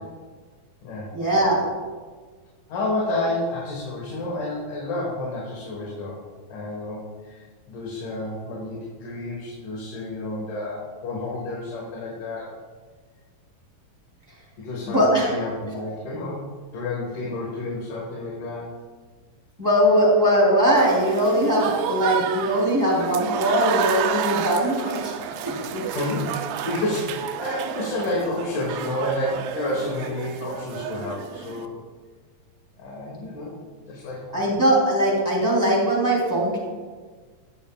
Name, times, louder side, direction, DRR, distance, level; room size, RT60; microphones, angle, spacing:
voice 1, 1.1-1.6 14.8-15.3 19.6-25.1 25.4-25.8 34.3-36.6, right 1 dB, 5° right, -5 dB, 2.3 m, -20 dB
voice 2, 2.7-6.2 6.5-12.5 14.6-16.5 16.7-18.7 25.8-31.7 32.8-33.6 33.8-34.2, left 2 dB, 65° left, -4 dB, 2.8 m, -30 dB
Applause / Crowd, 20.8-31.7, right 9 dB, 85° right, 2.3 m, -31 dB
18.5 x 7.2 x 2.3 m, 1.5 s
omnidirectional pair, 4.2 m